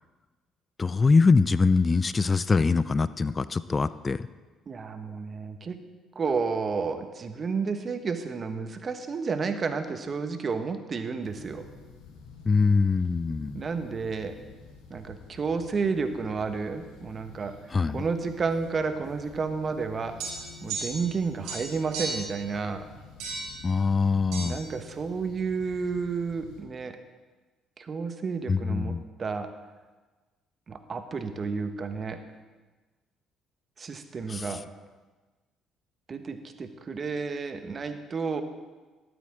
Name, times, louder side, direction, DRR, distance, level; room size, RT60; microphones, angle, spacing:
voice 1, 0.8-4.3 12.5-13.6 17.7-18.0 23.6-24.6 28.5-29.0 34.3-34.4, left 4 dB, 30° left, 16 dB, 0.3 m, -23 dB
voice 2, 4.7-5.8 6.1-11.7 13.5-14.4 14.9-20.1 20.6-22.8 24.4-27.0 27.8-29.5 30.7-32.2 33.8-34.6 36.1-38.4, right 5 dB, 40° right, 8 dB, 1.0 m, -31 dB
sound 1, 11.2-26.6, left 5 dB, 90° left, 1.5 m, -50 dB
sound 2, 20.2-21.2 21.4-22.3 23.2-23.6 24.3-24.5, right 3 dB, 80° right, 3.5 m, -34 dB
12.5 x 8.5 x 3.7 m, 1.3 s
supercardioid pair, 70°, 0 cm